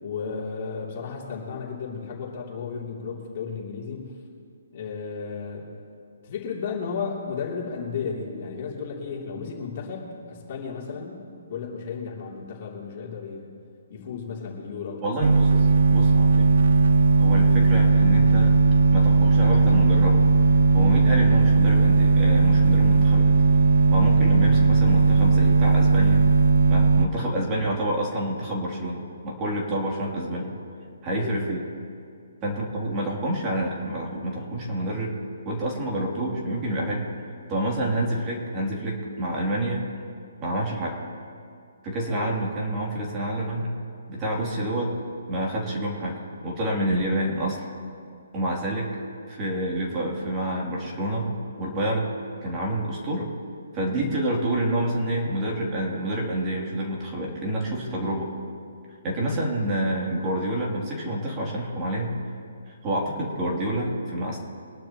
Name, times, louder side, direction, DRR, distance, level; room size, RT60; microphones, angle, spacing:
voice 1, 0.0-4.1 4.7-5.7 6.2-13.5 13.9-15.7 31.1-31.6 42.1-42.5, left 5 dB, 40° left, -2 dB, 3.0 m, -34 dB
voice 2, 15.0-15.5 15.9-16.6 17.2-18.6 18.9-20.2 20.7-23.3 23.9-26.3 26.7-30.5 31.0-31.6 32.4-35.2 35.4-37.1 37.5-39.8 40.4-40.9 41.8-43.7 44.1-44.9 45.3-46.2 46.4-47.7 48.3-48.9 49.3-52.1 52.4-53.3 53.7-58.3 59.0-62.2 62.7-64.4, right 1 dB, 25° right, -3 dB, 2.9 m, -28 dB
sound 1, 15.2-27.1, right 4 dB, 70° right, 0.8 m, -18 dB
23.5 x 12.0 x 3.0 m, 2.4 s
hypercardioid pair, 155°, 0 cm